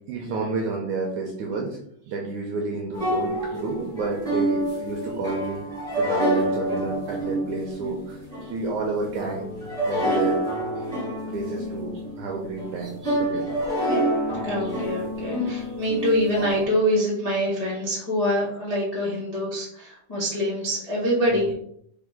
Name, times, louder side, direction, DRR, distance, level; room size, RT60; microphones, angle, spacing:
voice 1, 0.1-1.8 2.1-5.7 6.0-8.2 8.5-9.5 9.9-10.4 11.3-13.6 21.3-21.4, right 3 dB, 80° right, 0 dB, 1.8 m, -30 dB
sound 1, 2.9-16.6, right 1 dB, ahead, 1.4 m, -28 dB
voice 2, 14.4-21.5, equal, 85° left, -7 dB, 0.3 m, -25 dB
5.1 x 5.1 x 3.6 m, 0.68 s
omnidirectional pair, 4.4 m